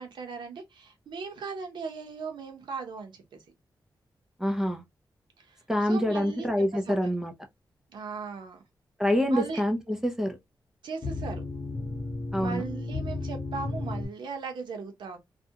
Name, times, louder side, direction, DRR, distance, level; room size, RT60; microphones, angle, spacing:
voice 1, 0.0-3.4 5.4-7.1 7.9-8.6 9.3-9.6 10.8-11.4 12.4-15.2, right 5 dB, 85° right, 0.7 m, -38 dB
voice 2, 4.4-4.8 5.7-7.3 9.0-10.4 12.3-12.6, equal, 5° right, 0.5 m, -26 dB
sound 1, 11.0-14.1, left 3 dB, 40° left, 0.7 m, -33 dB
2.4 x 2.1 x 2.7 m
wide cardioid pair, 120°, 8 cm